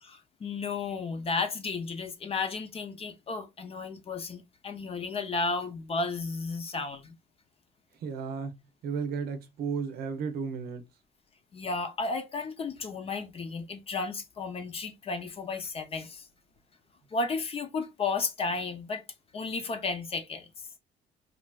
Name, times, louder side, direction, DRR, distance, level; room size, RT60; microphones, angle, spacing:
voice 1, 0.0-7.2 11.5-16.3 17.1-19.0 19.3-20.5, left 4 dB, 35° left, 0.6 m, -33 dB
voice 2, 8.0-10.9, right 5 dB, 65° right, 0.7 m, -34 dB
3.3 x 2.5 x 2.3 m
cardioid pair, 110°, 17 cm